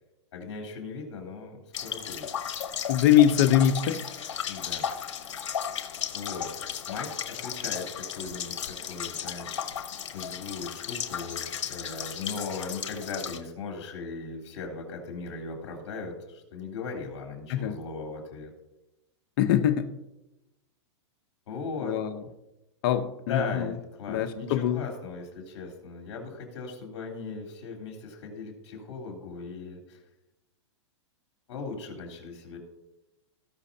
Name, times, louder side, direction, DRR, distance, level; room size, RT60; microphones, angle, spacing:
voice 1, 0.3-2.3 4.5-4.9 6.1-9.6 10.1-18.5 21.5-22.0 23.3-30.0 31.5-32.6, left 4 dB, 70° left, 1 dB, 3.5 m, -38 dB
sound 1, 1.7-13.4, left 8 dB, 90° left, 1.1 m, -35 dB
voice 2, 2.9-4.0 17.5-17.8 19.4-19.9 21.8-22.2 22.8-23.7 24.1-24.8, left 11 dB, 50° left, 7 dB, 0.9 m, -23 dB
18.5 x 6.4 x 2.8 m, 0.96 s
hypercardioid pair, 140°, 15 cm